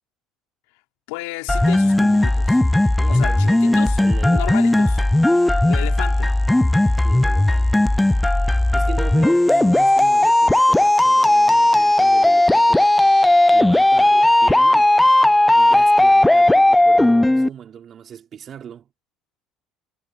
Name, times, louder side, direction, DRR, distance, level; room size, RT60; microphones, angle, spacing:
voice 1, 1.1-2.6 3.1-4.0 4.3-5.0 5.7-6.3, left 24 dB, 85° left, 4.3 m, -32 dB
sound 1, 1.5-17.5, left 1 dB, 10° left, 0.3 m, -16 dB
voice 2, 3.0-4.7 7.0-7.7 8.7-12.9 13.5-14.9 15.5-18.9, right 9 dB, 45° right, 3.7 m, -37 dB
supercardioid pair, 90°, 0 cm